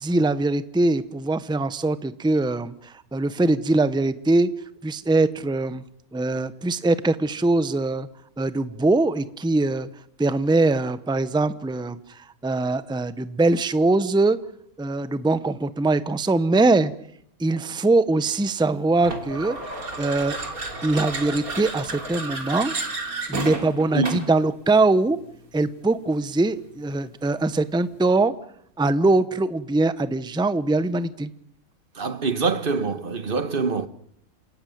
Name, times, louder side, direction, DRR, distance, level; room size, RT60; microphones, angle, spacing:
voice 1, 0.0-4.5 4.8-5.8 6.1-8.1 8.4-9.9 10.2-14.4 14.8-16.9 17.4-19.6 20.0-20.4 20.8-22.7 23.3-25.2 25.5-28.3 28.8-31.3, right 2 dB, 5° right, 0.7 m, -22 dB
sound 1, 19.0-24.4, right 3 dB, 80° right, 3.7 m, -32 dB
voice 2, 32.0-33.9, right 4 dB, 40° right, 1.4 m, -25 dB
28.0 x 17.5 x 9.4 m
omnidirectional pair, 1.5 m